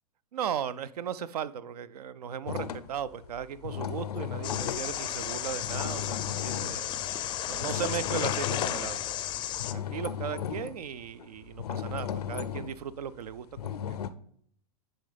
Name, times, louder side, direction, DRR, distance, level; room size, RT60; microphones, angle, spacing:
voice 1, 0.3-7.0 7.5-9.0 9.7-14.0, right 8 dB, 85° right, 16 dB, 0.4 m, -37 dB
sound 1, 2.5-9.1 9.6-14.1, left 9 dB, 90° left, 0.5 m, -36 dB
sound 2, 4.4-9.7, left 12 dB, 25° left, 0.4 m, -33 dB
10.5 x 3.8 x 3.4 m, 0.63 s
hypercardioid pair, 115°, 20 cm